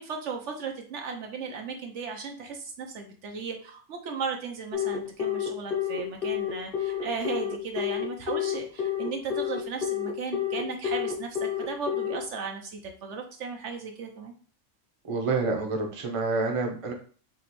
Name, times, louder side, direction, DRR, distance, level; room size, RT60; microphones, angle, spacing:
voice 1, 0.0-14.3, right 5 dB, 70° right, 3 dB, 1.0 m, -36 dB
Telephone, 4.7-12.1, left 10 dB, 50° left, 1.3 m, -29 dB
voice 2, 15.1-16.9, right 3 dB, 30° right, 1 dB, 0.8 m, -28 dB
5.0 x 3.0 x 3.0 m, 0.41 s
omnidirectional pair, 1.3 m